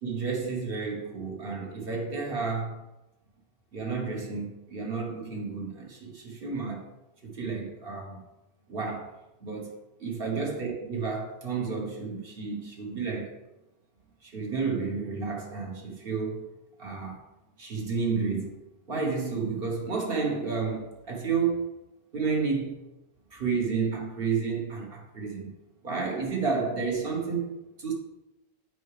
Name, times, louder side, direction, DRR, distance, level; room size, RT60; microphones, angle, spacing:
voice 1, 0.0-2.8 3.7-6.9 7.2-8.2 8.7-9.1 9.4-13.4 14.2-16.5 16.8-17.2 17.6-18.6 18.9-21.7 22.1-22.8 23.3-25.5 25.8-27.9, right 5 dB, 60° right, 1.3 m, -31 dB
7.7 x 4.7 x 3.3 m
omnidirectional pair, 1.1 m